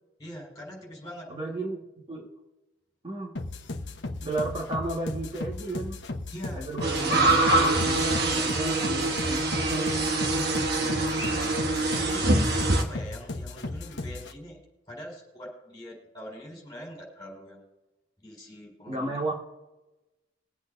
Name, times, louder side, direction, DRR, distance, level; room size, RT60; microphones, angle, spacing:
voice 1, 0.2-1.3 6.3-6.6 10.3-11.5 11.9-12.4 12.7-14.6 14.9-17.7 18.2-19.3, equal, 20° left, -2 dB, 4.8 m, -43 dB
voice 2, 1.3-1.8 2.1-2.3 3.0-3.3 4.2-6.0 6.5-9.9 18.9-19.3, right 2 dB, 30° right, -3 dB, 1.7 m, -33 dB
sound 1, 3.4-14.3, left 2 dB, 70° left, 0.9 m, -36 dB
sound 2, 6.8-12.8, right 2 dB, 55° right, 1.4 m, -24 dB
22.5 x 8.3 x 2.7 m, 1.0 s
head